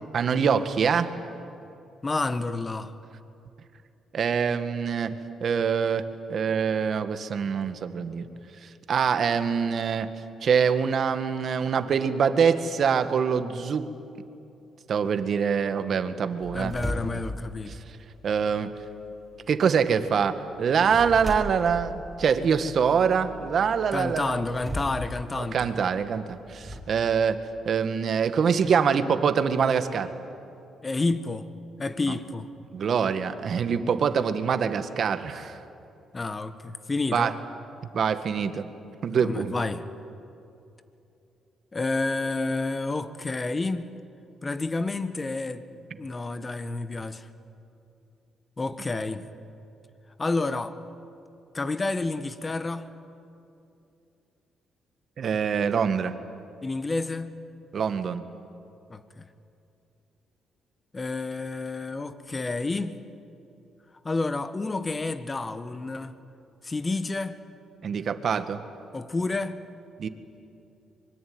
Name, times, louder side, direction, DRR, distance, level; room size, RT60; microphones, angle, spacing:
voice 1, 0.1-1.1 4.1-8.3 8.9-10.1 10.4-13.9 14.9-16.7 18.2-18.7 19.5-24.4 25.4-27.4 27.6-30.1 32.7-35.6 37.1-37.3 37.9-38.6 39.0-39.5 55.2-56.1 57.7-58.2 67.8-68.6 70.0-70.1, right 6 dB, 55° right, 10 dB, 1.7 m, -24 dB
voice 2, 2.0-2.9 16.5-17.8 23.9-25.7 30.8-31.5 31.8-32.5 36.1-37.3 39.1-39.8 41.7-43.9 44.4-45.6 46.0-47.3 48.6-49.3 50.2-50.8 51.5-52.9 56.6-57.3 58.9-59.3 60.9-63.0 64.0-66.1 66.6-67.4 68.9-69.6, left 3 dB, 25° left, 11 dB, 1.5 m, -29 dB
sound 1, 16.4-26.8, equal, 10° right, 5.4 m, -39 dB
24.5 x 23.0 x 9.6 m, 2.7 s
cardioid pair, 90°, 0 cm